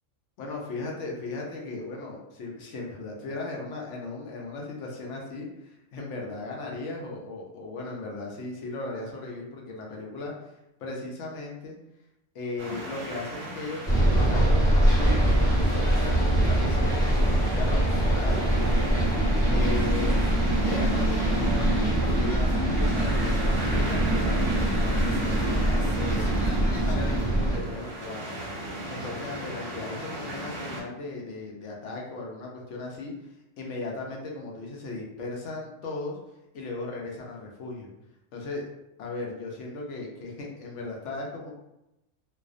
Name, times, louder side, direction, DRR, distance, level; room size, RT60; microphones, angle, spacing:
voice 1, 0.4-10.5 10.8-11.7 12.3-19.2 19.5-20.2 20.6-28.4 28.9-33.1 33.6-36.2 36.5-37.9 38.3-38.6 39.0-41.5, left 3 dB, 70° left, -1 dB, 0.9 m, -37 dB
sound 1, 12.6-30.8, right 1 dB, 55° right, 0.8 m, -37 dB
sound 2, 13.9-27.6, right 1 dB, 5° left, 0.6 m, -23 dB
2.3 x 2.1 x 2.4 m, 0.90 s
omnidirectional pair, 1.3 m